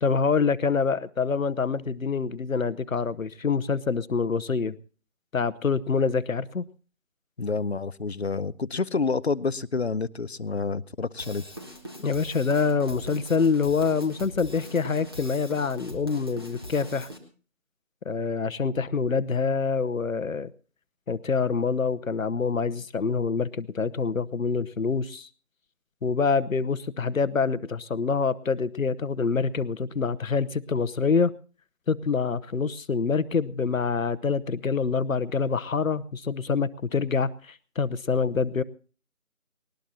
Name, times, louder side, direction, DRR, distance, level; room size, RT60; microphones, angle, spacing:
voice 1, 0.0-4.8 5.3-6.6 12.0-17.1 18.0-20.5 21.1-25.3 26.0-31.3 31.9-38.6, left 5 dB, 75° left, 15 dB, 0.9 m, -26 dB
voice 2, 7.4-11.4, left 4 dB, 50° left, 17 dB, 0.6 m, -28 dB
Drum kit / Drum, 11.2-17.2, equal, 20° right, 1.3 m, -41 dB
19.5 x 19.5 x 2.8 m, 0.38 s
figure-of-eight pair, 175°, 41 cm